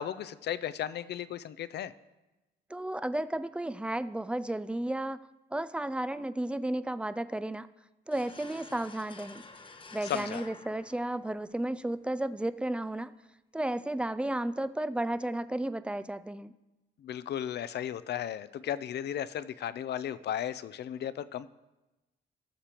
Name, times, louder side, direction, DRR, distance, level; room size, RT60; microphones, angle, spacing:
voice 1, 0.0-1.9 10.1-10.4 17.0-21.5, left 10 dB, 60° left, 15 dB, 0.5 m, -35 dB
voice 2, 2.7-5.2 5.5-7.7 8.1-9.4 9.9-13.1 13.5-16.5, right 1 dB, 5° right, 14 dB, 0.3 m, -33 dB
sound 1, 8.1-11.7, left 3 dB, 25° left, 0.8 m, -49 dB
17.5 x 6.8 x 2.9 m, 1.0 s
cardioid pair, 90°, 20 cm